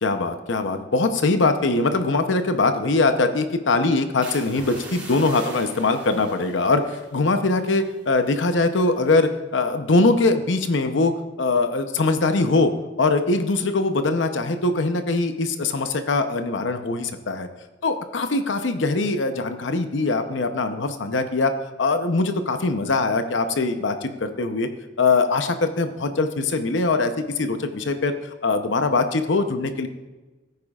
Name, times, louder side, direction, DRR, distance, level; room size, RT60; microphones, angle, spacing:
voice 1, 0.0-11.1 11.4-12.7 13.0-17.5 17.8-24.7 25.0-28.1 28.4-29.9, left 3 dB, 75° left, 8 dB, 0.8 m, -22 dB
sound 1, 4.2-8.0 8.2-8.6 9.1-9.4, right 1 dB, 10° right, 3.1 m, -42 dB
16.0 x 9.3 x 2.4 m, 1.2 s
head